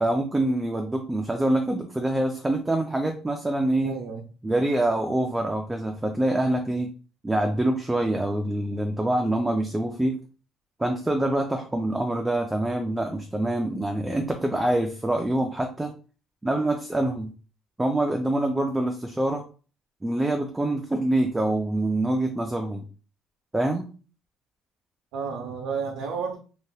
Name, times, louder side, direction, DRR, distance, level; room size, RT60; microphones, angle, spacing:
voice 1, 0.0-4.0 4.4-6.9 7.2-10.2 10.8-15.9 16.4-17.3 17.8-19.4 20.0-22.8 23.5-23.9, right 1 dB, 10° right, 3 dB, 0.3 m, -25 dB
voice 2, 3.8-4.2 25.1-26.4, right 5 dB, 85° right, 0 dB, 0.7 m, -31 dB
3.3 x 2.2 x 2.7 m, 0.36 s
cardioid pair, 170°, 0 cm